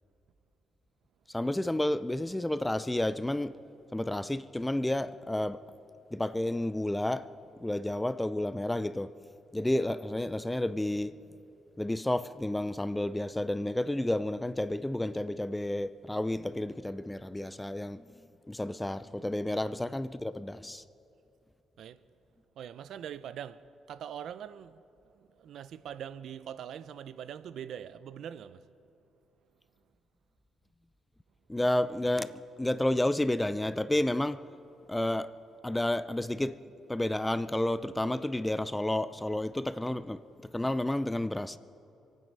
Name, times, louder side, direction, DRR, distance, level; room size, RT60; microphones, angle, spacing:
voice 1, 1.3-3.5 3.9-5.6 6.1-7.2 7.6-9.1 9.5-11.1 11.8-18.0 18.5-20.8 31.5-32.3 32.6-34.4 34.9-35.3 35.6-36.6 36.9-41.6, left 1 dB, 10° left, 0.4 m, -31 dB
voice 2, 19.5-20.0 21.8-22.0 22.6-24.8 25.1-28.6, right 9 dB, 70° right, 0.5 m, -43 dB
27.0 x 9.3 x 5.4 m
cardioid pair, 90°, 0 cm